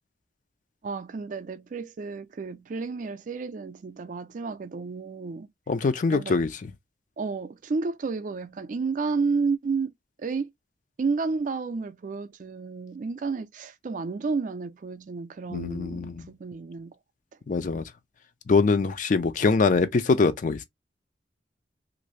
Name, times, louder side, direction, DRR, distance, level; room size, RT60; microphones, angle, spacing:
voice 1, 0.8-5.5 6.1-6.4 7.2-9.9 10.2-10.5 11.0-17.0, right 4 dB, 45° right, 0.4 m, -31 dB
voice 2, 5.7-6.7 15.5-16.2 17.5-17.8 18.5-20.6, left 4 dB, 45° left, 0.4 m, -23 dB
2.6 x 2.6 x 3.1 m
head